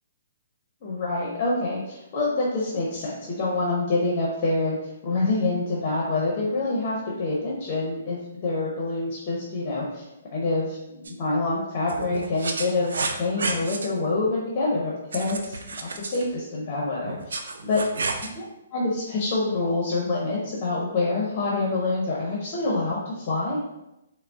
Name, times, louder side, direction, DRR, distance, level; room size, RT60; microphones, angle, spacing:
voice 1, 0.8-4.8 5.0-10.0 10.3-17.8 18.4-18.5 18.7-23.6, left 2 dB, 40° left, -4 dB, 0.6 m, -26 dB
sound 1, 11.0-11.1 11.9-13.9 15.1-16.3 17.1-18.3, right 3 dB, 75° right, 0.3 m, -31 dB
3.6 x 2.0 x 2.3 m, 0.90 s
hypercardioid pair, 140°, 0 cm